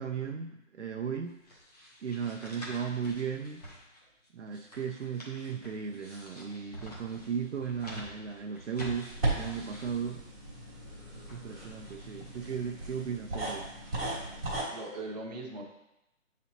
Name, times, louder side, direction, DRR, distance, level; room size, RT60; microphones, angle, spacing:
voice 1, 0.0-1.4 2.0-3.6 4.3-10.2 11.3-13.7, right 6 dB, 60° right, 2 dB, 0.6 m, -36 dB
sound 1, 1.4-12.5, equal, 30° left, 1.1 m, -47 dB
sound 2, 9.1-14.6, right 2 dB, ahead, 0.8 m, -36 dB
voice 2, 14.3-15.6, right 2 dB, 30° right, -2 dB, 0.9 m, -41 dB
8.2 x 4.1 x 2.9 m, 0.90 s
hypercardioid pair, 175°, 39 cm